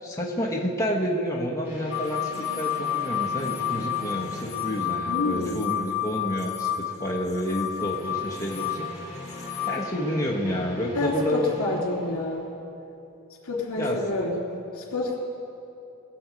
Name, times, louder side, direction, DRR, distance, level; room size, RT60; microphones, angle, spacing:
voice 1, 0.0-8.9 9.7-11.8 13.8-14.3, equal, 15° left, -3 dB, 1.1 m, -29 dB
sound 1, 1.6-6.1 7.6-12.4, left 1 dB, 15° right, 3.9 m, -41 dB
sound 2, 1.9-9.8, left 10 dB, 45° left, 2.0 m, -30 dB
voice 2, 5.1-5.6 11.0-12.5 13.4-14.4 14.8-15.2, left 2 dB, 70° left, -2 dB, 2.8 m, -28 dB
21.0 x 8.0 x 5.1 m, 2.8 s
head